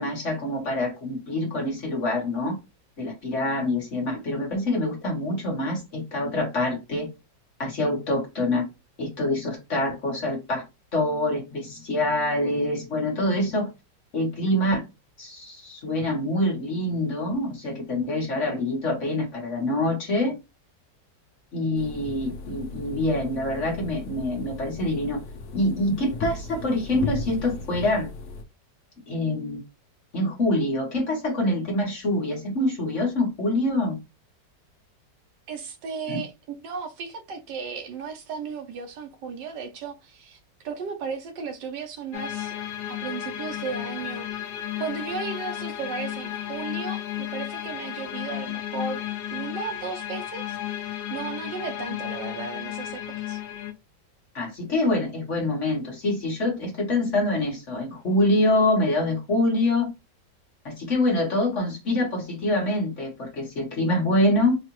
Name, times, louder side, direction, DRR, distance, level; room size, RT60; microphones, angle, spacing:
voice 1, 0.0-2.6 3.0-7.1 7.6-8.6 9.0-10.6 10.9-13.7 14.1-14.8 15.2-20.3 21.5-25.2 25.5-28.1 29.1-29.6 30.1-34.0 36.1-36.2 54.3-59.9 60.6-64.6, left 1 dB, 45° left, 1.4 m, -25 dB
sound 1, 21.7-28.4, left 3 dB, 65° left, 1.1 m, -36 dB
voice 2, 35.5-40.4 40.6-42.6 42.9-44.3 44.8-49.0 49.3-53.4, right 5 dB, 75° right, 1.3 m, -35 dB
sound 2, 42.1-53.7, left 12 dB, 85° left, 1.4 m, -33 dB
4.7 x 2.4 x 3.0 m
omnidirectional pair, 2.0 m